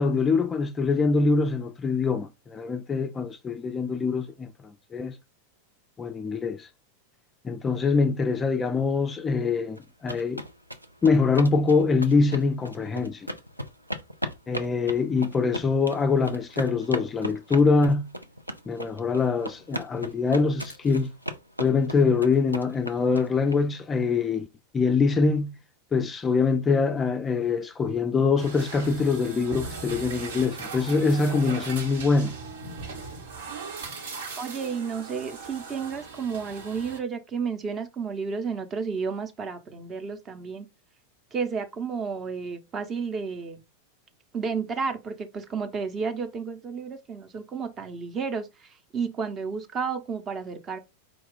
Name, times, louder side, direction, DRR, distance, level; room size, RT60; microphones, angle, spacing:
voice 1, 0.0-5.2 6.0-6.7 7.4-10.4 11.0-13.3 14.5-18.1 18.7-21.1 21.6-24.5 24.7-25.5 25.9-32.4, left 4 dB, 20° left, 0.4 m, -24 dB
sound 1, 9.8-23.5, equal, 90° right, 0.5 m, -36 dB
sound 2, 28.4-37.0, right 4 dB, 60° right, 1.0 m, -39 dB
voice 2, 34.4-40.7 41.3-43.6 44.3-50.8, right 5 dB, 25° right, 0.8 m, -32 dB
4.9 x 2.3 x 3.7 m
figure-of-eight pair, 90°, 0 cm